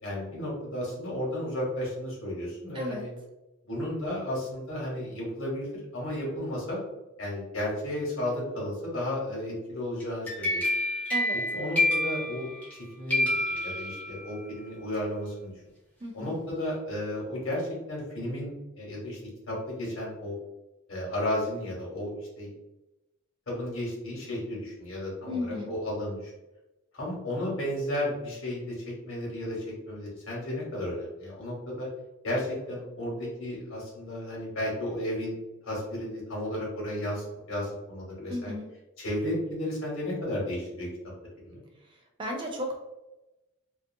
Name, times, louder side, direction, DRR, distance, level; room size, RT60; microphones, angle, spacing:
voice 1, 0.0-3.1 3.7-5.7 5.9-6.8 7.2-10.6 11.5-15.5 16.1-19.2 19.5-20.4 20.9-22.5 23.5-26.3 26.9-31.9 32.2-35.4 35.6-38.5 39.0-40.9 41.4-41.6, left 1 dB, 70° left, -4 dB, 1.1 m, -33 dB
voice 2, 2.7-3.1 11.1-11.4 16.0-16.3 25.3-25.7 38.3-38.7 42.2-42.8, left 1 dB, 25° right, 2 dB, 0.3 m, -34 dB
sound 1, 10.0-12.8 13.1-14.4, left 1 dB, 5° left, 0.7 m, -28 dB
2.5 x 2.3 x 2.5 m, 1.0 s
head